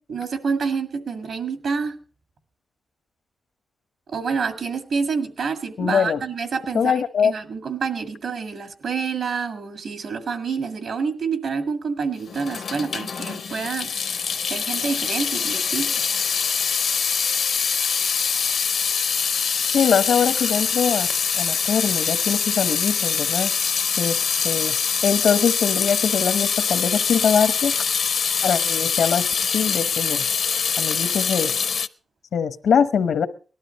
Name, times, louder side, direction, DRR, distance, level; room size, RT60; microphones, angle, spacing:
voice 1, 0.1-1.9 4.1-13.9 14.5-15.9, right 5 dB, 70° right, 8 dB, 1.9 m, -27 dB
voice 2, 5.8-6.2 6.7-7.3 19.7-21.1 21.3-23.5 24.0-24.2 24.4-24.7 25.0-27.7 28.4-29.3 29.5-30.2 30.8-31.5 32.3-33.3, left 7 dB, 90° left, 12 dB, 1.0 m, -22 dB
Water tap faucet / Sink (filling or washing) / Drip, 12.3-31.9, left 6 dB, 65° left, 0.6 m, -24 dB
18.5 x 12.5 x 4.2 m, 0.38 s
wide cardioid pair, 120°, 0 cm